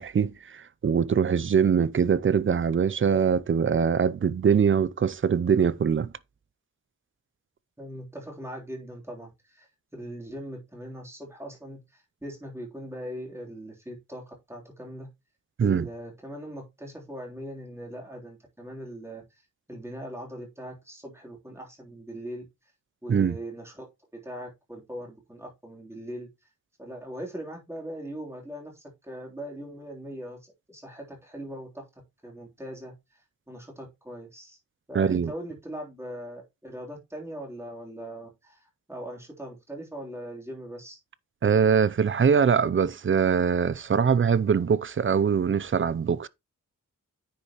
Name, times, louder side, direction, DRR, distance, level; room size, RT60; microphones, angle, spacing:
voice 1, 0.0-6.1 15.6-15.9 23.1-23.4 34.9-35.3 41.4-46.3, right 7 dB, 40° right, 0.5 m, -23 dB
voice 2, 7.8-9.7 9.9-15.1 15.6-19.2 19.7-22.5 23.0-23.9 24.1-26.3 26.8-33.2 33.5-34.6 34.9-38.6 38.9-41.0, right 1 dB, 10° right, 3.3 m, -40 dB
9.7 x 6.5 x 3.0 m
wide cardioid pair, 175°, 33 cm